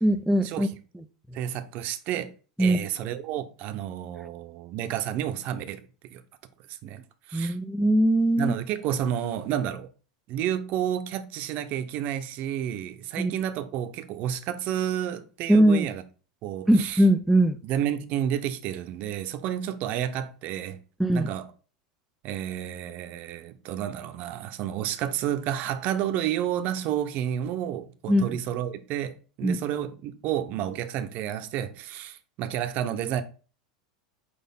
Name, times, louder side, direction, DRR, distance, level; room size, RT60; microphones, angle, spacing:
voice 1, 0.0-0.7 0.9-1.4 2.6-2.8 7.3-8.5 13.2-13.3 15.5-15.9 16.7-17.6 21.0-21.3 28.1-28.4 29.4-29.6, right 1 dB, ahead, 0.5 m, -21 dB
voice 2, 1.3-2.3 2.6-5.8 6.1-6.2 6.7-7.0 7.3-7.5 8.4-9.9 10.3-16.0 16.4-17.0 17.7-20.8 21.1-21.5 22.2-33.2, right 10 dB, 50° right, 0.9 m, -30 dB
5.0 x 4.3 x 5.4 m
hypercardioid pair, 105°, 4 cm